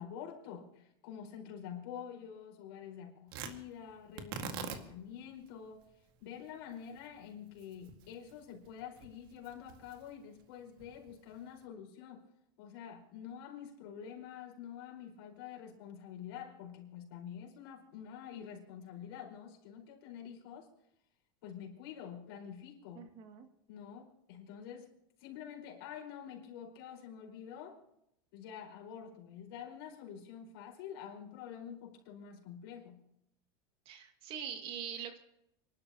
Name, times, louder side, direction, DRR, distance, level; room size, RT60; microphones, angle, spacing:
voice 1, 0.0-5.9 6.2-12.3 12.6-20.7 21.4-23.1 23.7-27.8 28.3-33.0, left 8 dB, 70° left, 4.9 m, -47 dB
Tearing, 3.3-11.6, right 7 dB, 70° right, 2.0 m, -48 dB
voice 2, 22.9-23.5 33.9-35.2, right 8 dB, 45° right, 2.3 m, -43 dB
29.5 x 12.0 x 3.0 m
supercardioid pair, 135°, 12 cm